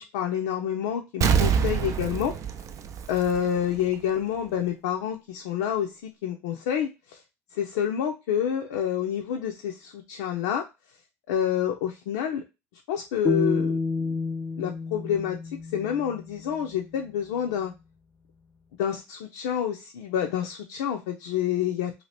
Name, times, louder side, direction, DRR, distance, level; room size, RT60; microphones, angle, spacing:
voice 1, 0.0-2.3 3.1-7.2 7.5-10.6 11.3-12.4 12.9-13.8 14.6-15.4 15.7-17.7 18.8-21.9, left 9 dB, 75° left, 2 dB, 0.4 m, -28 dB
Explosion, 1.2-3.8 4.2-4.3, right 7 dB, 50° right, 0.4 m, -25 dB
sound 1, 13.2-16.4, left 3 dB, 25° left, 0.5 m, -29 dB
2.7 x 2.4 x 3.2 m, 0.25 s
hypercardioid pair, 65°, 7 cm